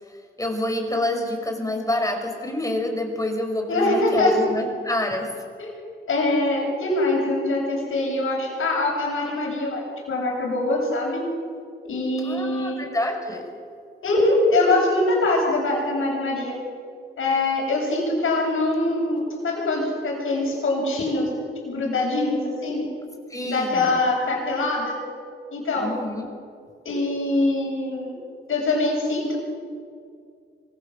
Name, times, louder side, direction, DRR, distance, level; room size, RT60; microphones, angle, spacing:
voice 1, 0.4-5.3 12.2-13.4 23.3-24.0 25.8-26.3, left 1 dB, 15° left, 4 dB, 5.4 m, -27 dB
voice 2, 3.7-4.3 5.6-5.7 6.1-11.2 11.8-12.9 14.0-16.6 17.2-21.3 21.6-22.9 23.4-25.0 25.5-25.9 26.8-28.1 28.5-29.4, left 2 dB, 75° left, -1 dB, 7.8 m, -23 dB
25.0 x 17.5 x 7.5 m, 2.2 s
cardioid pair, 60°, 21 cm